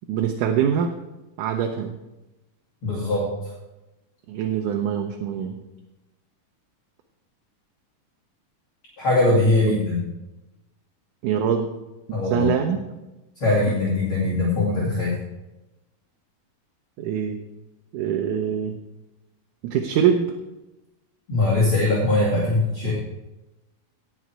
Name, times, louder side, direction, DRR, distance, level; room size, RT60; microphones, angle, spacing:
voice 1, 0.1-1.0 1.4-1.9 4.3-5.6 9.6-9.8 11.2-11.7 12.1-12.8 17.0-17.4 17.9-18.8 19.6-20.3, right 8 dB, 75° right, 4 dB, 2.2 m, -24 dB
voice 2, 2.8-3.3 9.0-10.0 12.1-12.5 13.4-15.2 21.3-22.9, left 2 dB, 40° left, -5 dB, 2.9 m, -21 dB
18.0 x 6.3 x 4.7 m, 1.0 s
omnidirectional pair, 4.0 m